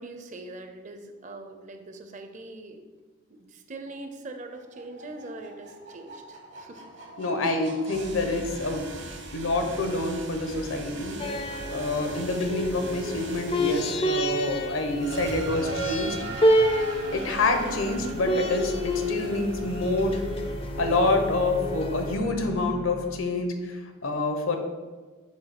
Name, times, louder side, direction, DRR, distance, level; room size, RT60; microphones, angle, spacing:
voice 1, 0.0-2.8 3.3-6.8 11.5-11.8, right 2 dB, 35° right, 6 dB, 0.5 m, -42 dB
sound 1, 4.3-23.2, right 2 dB, 60° right, 1.0 m, -39 dB
voice 2, 7.2-9.0 9.3-11.2 11.7-16.2 16.7-16.9 17.1-20.2 20.8-24.6, left 2 dB, 80° left, 5 dB, 0.9 m, -27 dB
sound 2, 11.2-22.2, equal, 25° left, 0.4 m, -29 dB
7.2 x 2.7 x 5.9 m, 1.3 s
head